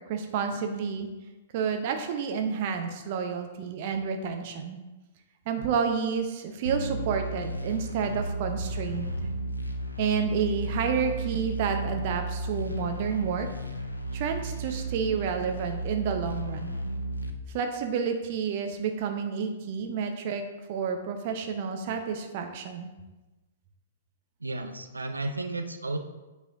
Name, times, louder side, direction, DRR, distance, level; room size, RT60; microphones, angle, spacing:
voice 1, 0.1-1.1 1.5-4.8 5.5-9.2 10.0-13.5 14.1-16.8 17.5-20.4 20.7-22.9, right 6 dB, 45° right, 5 dB, 0.8 m, -30 dB
sound 1, 6.7-17.3, right 2 dB, 85° left, 0.6 m, -33 dB
voice 2, 24.4-26.0, right 2 dB, 80° right, 6 dB, 0.6 m, -33 dB
8.0 x 4.4 x 3.6 m, 1.1 s
figure-of-eight pair, 110°, 0 cm